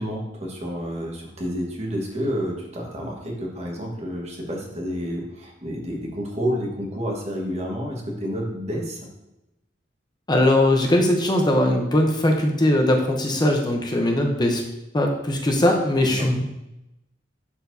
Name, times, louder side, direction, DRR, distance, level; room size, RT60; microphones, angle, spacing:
voice 1, 0.0-9.0 16.0-16.3, equal, 35° right, 0 dB, 1.4 m, -29 dB
voice 2, 10.3-14.6 14.9-16.4, left 1 dB, 25° left, 1 dB, 0.8 m, -20 dB
11.0 x 4.5 x 2.7 m, 0.91 s
head